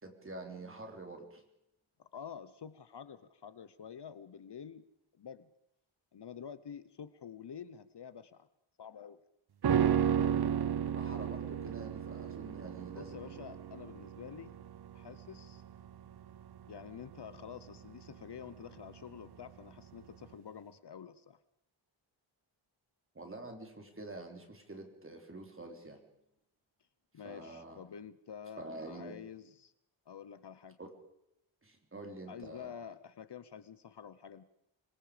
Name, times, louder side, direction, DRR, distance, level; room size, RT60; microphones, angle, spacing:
voice 1, 0.0-1.4 10.9-13.6 23.1-26.0 27.2-27.8 28.6-29.1 30.8-30.9 31.6-32.7, right 2 dB, 25° right, 3 dB, 3.7 m, -47 dB
voice 2, 2.0-4.8 5.2-5.5 6.1-8.5 8.8-9.2 13.0-14.5 14.9-15.6 16.7-21.4 27.1-29.7 30.1-30.8 32.3-34.4, left 7 dB, 55° left, 15 dB, 0.9 m, -48 dB
sound 1, 9.6-19.0 19.3-19.4, right 8 dB, 55° right, 0.8 m, -34 dB
26.0 x 22.5 x 5.1 m, 0.81 s
wide cardioid pair, 175°, 48 cm